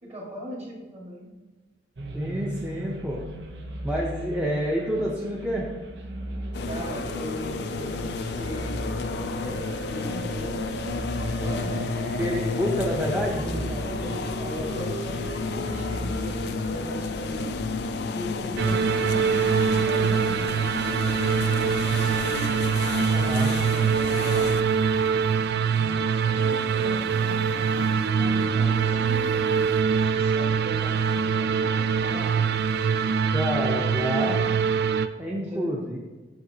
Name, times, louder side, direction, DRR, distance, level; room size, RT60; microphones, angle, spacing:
voice 1, 0.0-1.3 6.6-8.9 9.4-10.8 11.2-11.9 12.5-12.6 13.3-17.5 18.1-20.7 21.8-22.6 22.9-24.5 25.7-29.6 29.9-32.4 35.4-35.8, right 1 dB, 35° right, -3 dB, 1.7 m, -39 dB
sound 1, 2.0-18.0, right 1 dB, 80° right, 0.8 m, -37 dB
voice 2, 2.1-3.2 3.8-5.7 12.2-13.4 15.5-15.7 23.1-23.5 33.3-34.4 35.2-36.0, equal, 5° right, -4 dB, 0.6 m, -28 dB
sound 2, 6.5-24.6, left 4 dB, 65° left, 0.4 m, -32 dB
sound 3, 18.6-35.1, right 6 dB, 65° right, 0.3 m, -23 dB
7.8 x 5.6 x 2.8 m, 1.3 s
head